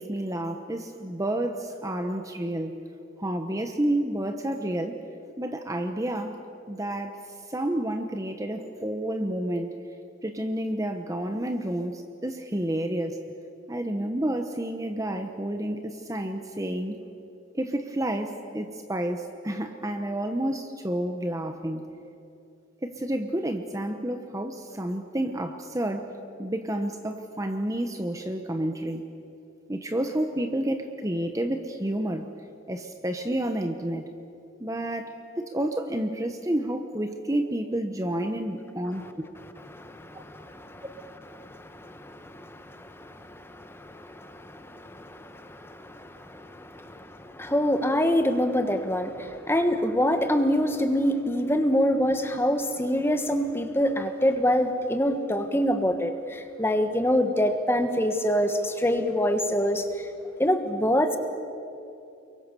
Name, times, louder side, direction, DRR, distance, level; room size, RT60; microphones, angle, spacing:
voice 1, 0.0-2.8 3.2-5.0 5.4-7.2 7.5-9.8 10.2-13.2 13.7-16.9 17.5-21.8 22.8-26.1 26.4-29.1 29.7-32.3 32.7-34.1 34.6-39.0, right 1 dB, 15° right, 6 dB, 1.0 m, -30 dB
voice 2, 39.7-40.9 41.4-59.9 60.4-61.2, equal, 10° left, 7 dB, 1.4 m, -26 dB
29.5 x 23.0 x 6.9 m, 2.7 s
head